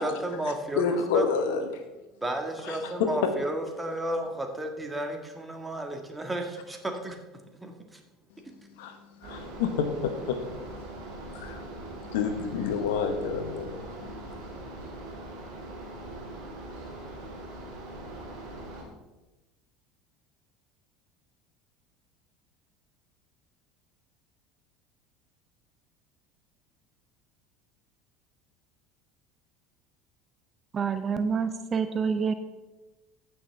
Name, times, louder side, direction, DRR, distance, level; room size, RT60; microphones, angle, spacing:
voice 1, 0.0-1.3 2.2-7.2 7.6-8.0, right 1 dB, 15° right, 3 dB, 1.8 m, -33 dB
voice 2, 0.8-1.8 2.6-3.3 8.8-10.7 11.1-14.5, left 6 dB, 75° left, 7 dB, 1.2 m, -30 dB
sound 1, 9.2-18.8, right 1 dB, 65° right, 3.4 m, -41 dB
voice 3, 30.7-32.3, right 6 dB, 35° right, 10 dB, 0.6 m, -27 dB
14.5 x 6.2 x 3.6 m, 1.1 s
hypercardioid pair, 75°, 0 cm